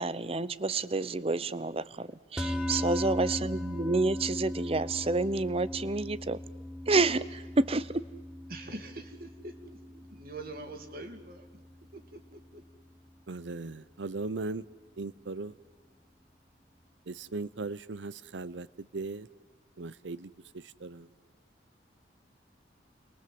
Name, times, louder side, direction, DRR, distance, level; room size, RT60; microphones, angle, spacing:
voice 1, 0.0-6.4 6.9-8.0, right 3 dB, 35° right, 0.7 m, -29 dB
sound 1, 2.4-12.8, left 1 dB, 5° right, 1.6 m, -39 dB
voice 2, 8.5-12.6, right 2 dB, 55° right, 2.6 m, -45 dB
voice 3, 13.3-14.7 15.0-15.5 17.1-18.7 18.9-19.3 19.8-21.1, right 3 dB, 90° right, 0.8 m, -38 dB
29.5 x 22.0 x 7.8 m
head